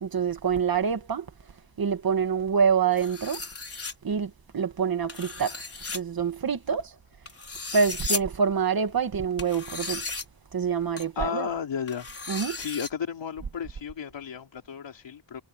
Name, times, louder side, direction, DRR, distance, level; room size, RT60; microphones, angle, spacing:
voice 1, 0.0-1.3 1.8-3.4 4.0-5.6 5.9-6.9 7.7-10.1 10.5-11.5 12.3-12.6, right 6 dB, 50° right, 2.3 m, -26 dB
sound 1, 3.0-3.9 5.1-6.0 7.3-8.2 9.4-10.2 11.0-11.1 11.9-12.9, left 4 dB, 30° left, 4.7 m, -35 dB
voice 2, 11.2-12.1 12.5-15.4, left 7 dB, 80° left, 3.6 m, -33 dB
wide cardioid pair, 155°, 44 cm